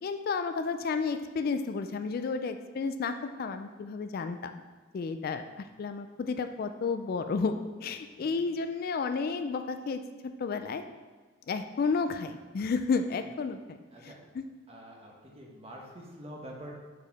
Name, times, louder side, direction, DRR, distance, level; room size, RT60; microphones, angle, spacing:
voice 1, 0.0-4.6 4.9-10.8 11.5-13.8 14.0-14.4, left 4 dB, 50° left, 8 dB, 0.3 m, -32 dB
voice 2, 14.7-16.8, equal, 30° right, -1 dB, 1.1 m, -46 dB
5.0 x 4.5 x 5.3 m, 1.4 s
head